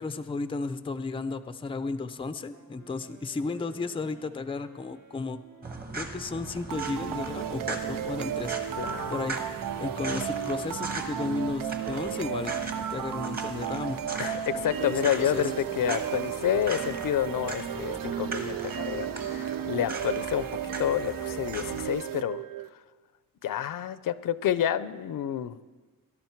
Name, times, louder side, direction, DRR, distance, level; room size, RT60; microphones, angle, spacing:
voice 1, 0.0-5.4 5.9-9.4 9.8-14.0 14.5-15.5, left 3 dB, 15° left, 11 dB, 0.4 m, -34 dB
Wind instrument woodwind instrument, 2.4-10.3, right 3 dB, 60° right, 2.4 m, -54 dB
sound 1, 5.6-21.9, right 3 dB, 25° right, 1.4 m, -40 dB
sound 2, 6.7-22.7, right 10 dB, 75° right, 0.5 m, -34 dB
voice 2, 8.8-9.2 14.2-20.5 20.8-22.4 23.4-25.6, left 10 dB, 75° left, 15 dB, 0.6 m, -29 dB
18.0 x 11.5 x 4.5 m, 1.3 s
wide cardioid pair, 160°, 34 cm